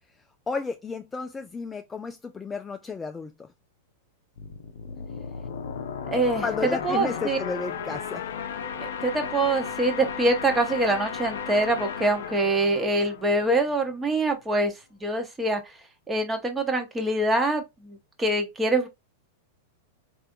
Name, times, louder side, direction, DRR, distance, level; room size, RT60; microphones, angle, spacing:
voice 1, 0.5-3.5 6.4-8.2, left 4 dB, 15° left, 0.3 m, -32 dB
sound 1, 4.4-13.9, left 7 dB, 70° left, 0.5 m, -35 dB
voice 2, 6.1-6.4 6.8-7.4 8.8-14.7 15.0-15.6 16.1-18.9, right 2 dB, 15° right, 0.9 m, -24 dB
3.3 x 2.5 x 2.6 m
hypercardioid pair, 100°, 0 cm